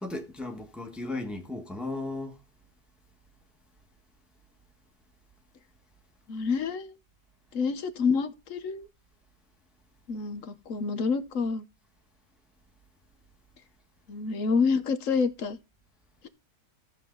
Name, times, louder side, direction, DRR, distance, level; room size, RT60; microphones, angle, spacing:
voice 1, 0.0-2.3, left 2 dB, ahead, 1.3 m, -35 dB
voice 2, 6.3-6.9 7.5-8.9 10.1-11.6 14.1-15.6 16.2-16.3, left 5 dB, 55° left, 1.2 m, -28 dB
14.0 x 7.4 x 3.9 m
omnidirectional pair, 1.9 m